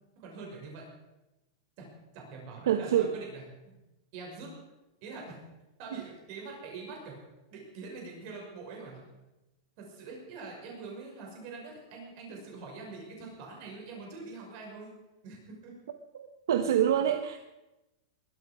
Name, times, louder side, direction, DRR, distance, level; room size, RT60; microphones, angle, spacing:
voice 1, 0.2-0.8 1.8-1.9 2.1-3.8 4.1-4.5 5.0-5.4 5.8-7.2 7.5-9.0 9.8-14.9 15.2-15.7, right 3 dB, 40° right, -1 dB, 6.0 m, -44 dB
voice 2, 2.7-3.2 16.1-17.4, right 10 dB, 75° right, 7 dB, 1.1 m, -26 dB
21.0 x 13.0 x 5.2 m, 1.0 s
supercardioid pair, 170°, 2 cm